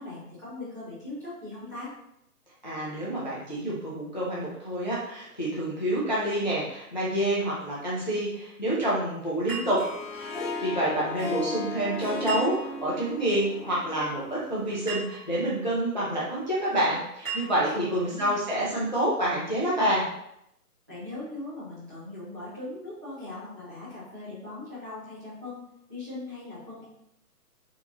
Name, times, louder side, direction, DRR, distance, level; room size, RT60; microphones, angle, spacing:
voice 1, 0.0-1.9 17.5-18.4 20.9-25.6 25.9-26.8, left 2 dB, 10° right, -14 dB, 0.6 m, -40 dB
voice 2, 2.6-9.8 10.1-10.3 10.6-20.1, right 1 dB, 30° left, -7 dB, 0.4 m, -28 dB
sound 1, 9.5-10.4 12.3-13.0 14.9-15.6 17.2-18.0, right 5 dB, 35° right, 1.2 m, -38 dB
Harp, 9.6-14.8, left 2 dB, 55° left, 1.2 m, -36 dB
3.5 x 2.5 x 2.9 m, 0.78 s
hypercardioid pair, 160°, 48 cm